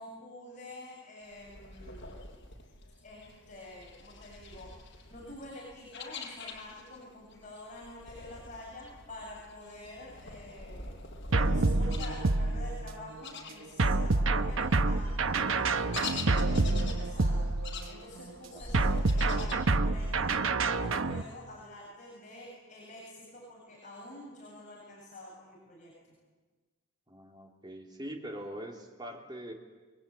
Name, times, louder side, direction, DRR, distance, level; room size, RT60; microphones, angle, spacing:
voice 1, 0.0-2.1 3.0-10.9 11.5-16.3 16.6-25.9, left 1 dB, 40° left, -5 dB, 7.9 m, -48 dB
sound 1, 1.3-7.0 7.3-14.1 14.4-19.6, left 3 dB, 60° left, 5.9 m, -45 dB
sound 2, 11.3-13.1 13.8-18.0 18.7-21.2, right 3 dB, 85° right, 1.0 m, -27 dB
voice 2, 27.1-29.5, equal, 25° right, 1 dB, 3.1 m, -44 dB
29.5 x 22.5 x 8.8 m, 1.3 s
head